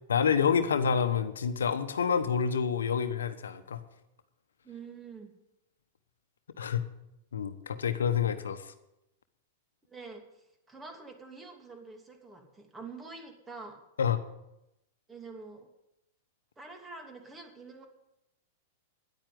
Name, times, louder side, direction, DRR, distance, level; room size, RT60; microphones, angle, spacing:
voice 1, 0.1-3.8 6.6-6.9 7.3-8.7 14.0-14.2, left 7 dB, 85° left, 11 dB, 1.0 m, -28 dB
voice 2, 4.6-5.3 9.9-13.8 15.1-15.7 16.6-17.9, right 4 dB, 15° right, 4 dB, 2.8 m, -46 dB
10.5 x 9.0 x 9.4 m, 0.89 s
hypercardioid pair, 110°, 0 cm